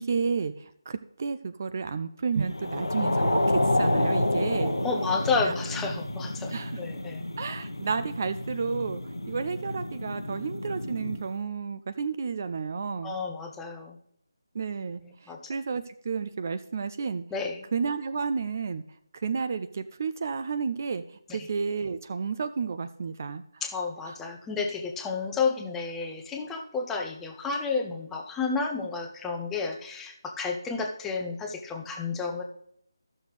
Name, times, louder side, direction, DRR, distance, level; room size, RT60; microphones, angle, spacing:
voice 1, 0.0-4.8 5.4-5.5 6.5-6.8 7.4-13.1 14.5-17.2 17.7-18.8 19.1-23.6 24.1-24.2, right 5 dB, 35° right, 10 dB, 0.4 m, -31 dB
sound 1, 2.5-11.2, left 1 dB, 75° left, 1.0 m, -29 dB
voice 2, 4.6-7.3 13.0-14.0 15.3-15.5 17.3-17.6 21.4-21.5 23.6-32.4, left 4 dB, 5° left, 2 dB, 0.6 m, -31 dB
13.5 x 6.4 x 3.2 m, 0.72 s
figure-of-eight pair, 155°, 2 cm